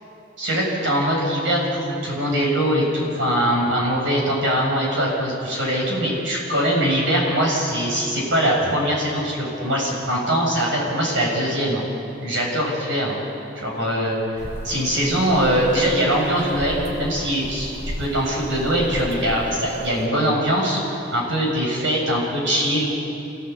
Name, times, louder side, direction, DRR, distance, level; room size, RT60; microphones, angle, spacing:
voice 1, 0.4-11.8 12.2-13.2 13.6-14.2 14.6-20.8 21.1-22.9, equal, 85° right, -3 dB, 7.4 m, -22 dB
sound 1, 14.4-20.1, equal, 55° right, 2.8 m, -35 dB
27.5 x 16.5 x 8.5 m, 2.8 s
head